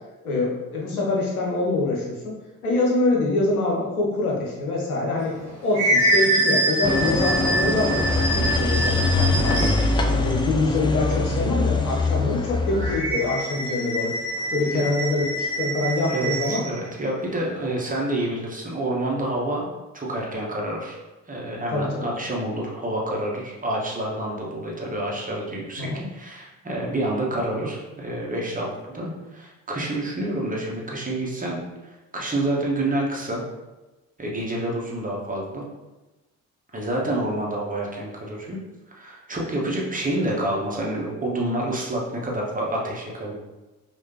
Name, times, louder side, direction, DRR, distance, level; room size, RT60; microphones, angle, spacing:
voice 1, 0.2-2.4 2.6-5.4 5.6-9.7 10.1-14.1 14.5-16.6 21.7-22.1 25.8-26.0, left 2 dB, 85° left, -2 dB, 0.8 m, -25 dB
sound 1, 5.2-10.0 12.7-16.7, right 1 dB, 85° right, 1.3 m, -25 dB
sound 2, 6.8-13.0, left 3 dB, 10° left, 0.3 m, -23 dB
voice 2, 16.1-19.7 19.9-21.0 21.3-31.6 32.1-33.4 34.2-35.6 36.7-38.6 38.9-43.3, right 1 dB, 20° right, -3 dB, 1.2 m, -28 dB
4.8 x 2.6 x 2.8 m, 1.1 s
figure-of-eight pair, 40°, 43 cm